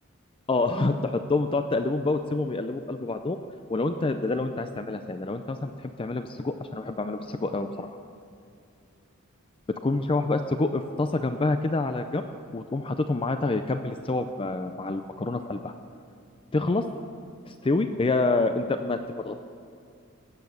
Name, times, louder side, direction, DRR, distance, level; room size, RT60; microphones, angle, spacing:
voice 1, 0.5-3.4 3.7-7.9 9.8-12.2 12.5-15.7 16.5-16.8 17.5-19.3, left 2 dB, 25° left, 8 dB, 0.4 m, -27 dB
17.0 x 8.2 x 7.0 m, 2.4 s
head